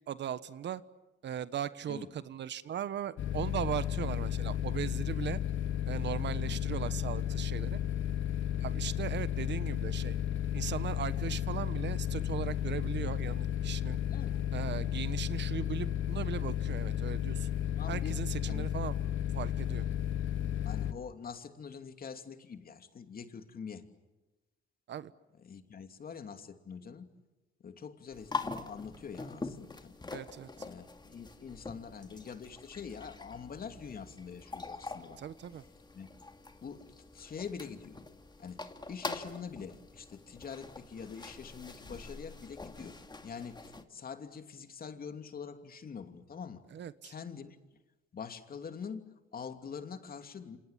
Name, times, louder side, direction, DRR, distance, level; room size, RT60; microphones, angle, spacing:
voice 1, 0.1-0.8 1.2-5.4 5.8-7.8 8.6-10.2 10.5-14.0 14.5-17.5 17.9-18.9 19.3-19.9 24.9-25.1 30.1-30.5 35.2-35.6 46.7-47.1, right 9 dB, 65° right, 15 dB, 1.2 m, -38 dB
sound 1, 3.2-20.9, left 11 dB, 75° left, 1.7 m, -33 dB
voice 2, 17.8-18.2 18.5-18.7 20.6-23.8 25.4-27.1 27.6-30.0 30.5-35.2 35.9-36.1 36.6-36.9 37.1-38.0 38.4-38.6 38.9-43.0 43.2-46.6 47.0-47.6 48.1-50.6, left 6 dB, 50° left, 7 dB, 2.9 m, -45 dB
sound 2, 28.1-43.8, left 3 dB, 20° left, 2.4 m, -44 dB
28.0 x 27.5 x 7.5 m, 1.1 s
cardioid pair, 90°, 20 cm